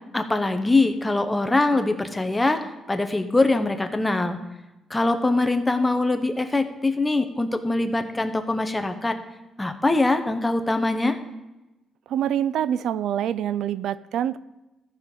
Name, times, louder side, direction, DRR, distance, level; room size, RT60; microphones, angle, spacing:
voice 1, 0.1-4.4 4.9-9.2 9.6-11.2, left 2 dB, 10° left, 7 dB, 0.8 m, -23 dB
voice 2, 12.1-14.4, right 10 dB, 75° right, 17 dB, 0.3 m, -25 dB
14.0 x 5.0 x 5.4 m, 1.0 s
cardioid pair, 120°, 0 cm